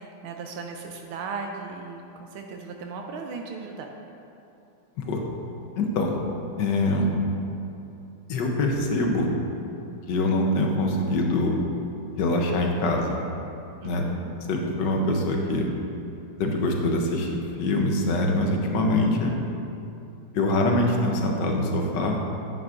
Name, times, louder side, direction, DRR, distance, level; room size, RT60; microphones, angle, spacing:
voice 1, 0.0-3.9 13.8-14.3, right 4 dB, 85° right, 2 dB, 1.4 m, -37 dB
voice 2, 5.8-6.2 6.6-7.1 8.3-9.3 10.1-11.5 12.2-13.2 13.8-14.1 14.5-15.7 16.4-19.3 20.3-22.2, left 2 dB, 65° left, 1 dB, 1.4 m, -24 dB
9.4 x 9.3 x 2.5 m, 2.7 s
omnidirectional pair, 2.3 m